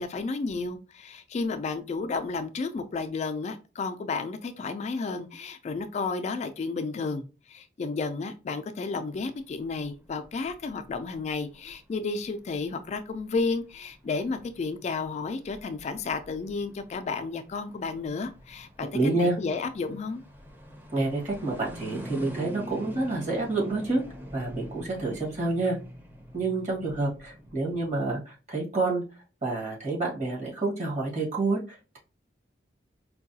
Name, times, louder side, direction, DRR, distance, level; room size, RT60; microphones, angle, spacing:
voice 1, 0.0-20.2, left 4 dB, 40° left, 9 dB, 0.3 m, -32 dB
sound 1, 9.2-28.1, equal, 10° right, 0.6 m, -46 dB
voice 2, 18.9-19.4 20.9-24.0 24.3-25.8 26.3-29.0 29.4-32.0, right 2 dB, 45° right, -3 dB, 1.5 m, -28 dB
4.5 x 2.2 x 2.7 m, 0.32 s
head